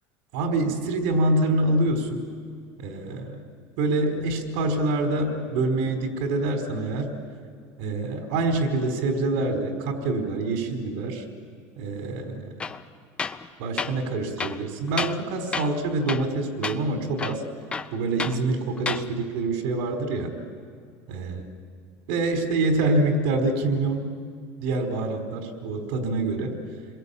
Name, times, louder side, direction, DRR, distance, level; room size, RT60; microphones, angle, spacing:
voice 1, 0.3-2.2 2.8-3.5 3.8-7.1 7.8-11.2 11.8-12.5 13.6-17.4 17.9-20.3 21.1-21.4 22.1-24.1 24.6-26.6, right 2 dB, 75° right, 6 dB, 4.7 m, -26 dB
Tools, 12.6-12.8 13.2-13.5 13.8-13.9 14.4-15.2 15.5-15.8 16.1-16.4 16.6-16.8 17.2-18.4 18.8-19.1, left 5 dB, 15° left, 0.8 m, -31 dB
29.0 x 22.0 x 8.7 m, 2.1 s
cardioid pair, 165°, 6 cm